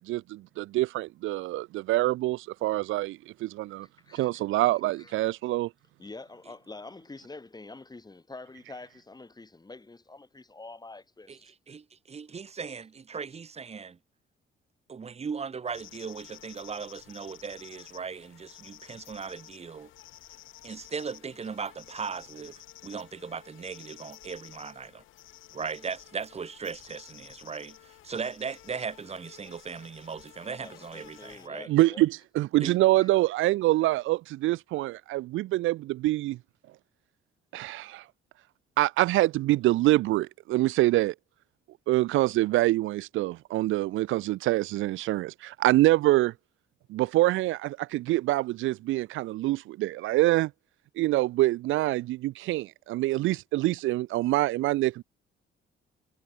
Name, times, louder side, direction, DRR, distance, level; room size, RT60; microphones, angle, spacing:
voice 1, 0.1-3.9 4.1-5.7 31.7-36.4 37.5-38.0 38.8-41.1 41.9-46.3 46.9-50.5 51.0-55.0, right 17 dB, 80° right, 0.5 m, -25 dB
voice 2, 3.8-4.4 5.0-5.1 6.0-11.4 30.6-32.1 33.0-33.1, left 3 dB, 20° left, 5.2 m, -46 dB
voice 3, 11.3-14.0 14.9-19.9 20.6-25.0 25.5-31.7 32.6-32.8, right 5 dB, 30° right, 1.1 m, -38 dB
sound 1, 15.7-31.5, left 15 dB, 85° left, 3.6 m, -52 dB
cardioid pair, 90°, 20 cm